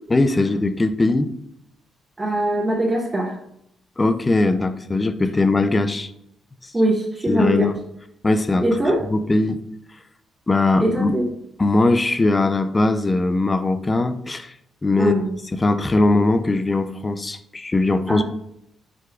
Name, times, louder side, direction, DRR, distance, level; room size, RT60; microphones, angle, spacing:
voice 1, 0.1-1.3 4.0-6.1 7.3-7.7 8.2-8.7 9.1-9.6 10.5-11.2 11.6-14.5 14.8-15.1 15.5-18.2, left 2 dB, 20° left, 11 dB, 0.4 m, -20 dB
voice 2, 2.2-3.3 6.7-7.7 8.6-9.0 10.8-11.3 15.0-15.3 18.1-18.2, right 1 dB, 20° right, -2 dB, 0.7 m, -21 dB
4.8 x 2.3 x 4.5 m, 0.75 s
cardioid pair, 90°, 0 cm